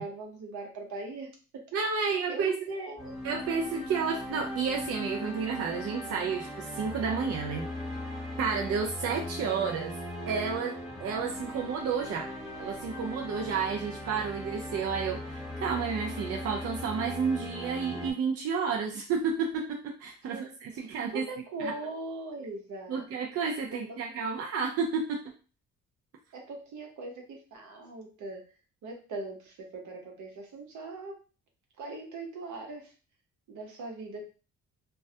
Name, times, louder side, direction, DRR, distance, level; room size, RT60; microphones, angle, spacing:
voice 1, 0.0-1.6 2.0-3.1 20.3-23.1 23.7-24.0 26.3-28.4 28.8-31.1 31.8-32.9 33.5-34.2, right 2 dB, 75° right, 2 dB, 0.8 m, -40 dB
voice 2, 1.7-2.6 3.2-7.7 8.4-9.9 10.3-12.3 12.6-21.3 21.6-21.7 22.9-25.2, right 5 dB, 50° right, 0 dB, 0.4 m, -31 dB
sound 1, 3.0-18.1, left 1 dB, ahead, 1.0 m, -39 dB
2.2 x 2.1 x 2.7 m, 0.35 s
cardioid pair, 90°, 30 cm